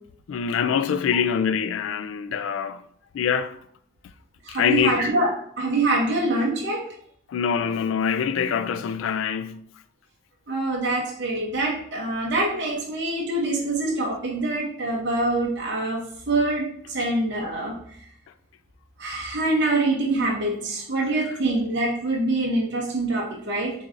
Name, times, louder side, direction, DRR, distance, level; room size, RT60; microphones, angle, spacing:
voice 1, 0.3-2.8 3.1-3.5 4.5-5.1 7.3-9.6, left 7 dB, 80° left, 0.3 m, -24 dB
voice 2, 4.4-5.3 5.6-6.8 10.5-17.8 19.0-23.7, right 2 dB, 60° right, 0.8 m, -25 dB
6.5 x 2.7 x 2.5 m
head